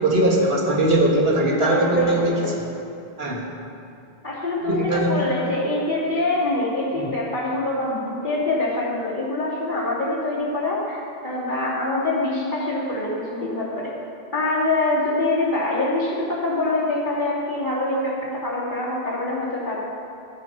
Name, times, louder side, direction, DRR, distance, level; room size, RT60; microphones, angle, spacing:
voice 1, 0.0-2.4 3.2-3.5 4.6-5.3 7.0-7.1, right 1 dB, 75° right, -2 dB, 1.9 m, -20 dB
voice 2, 1.5-2.5 4.2-13.9 14.3-19.8, left 2 dB, 50° left, -7 dB, 3.0 m, -25 dB
14.5 x 7.5 x 5.4 m, 2.6 s
omnidirectional pair, 1.0 m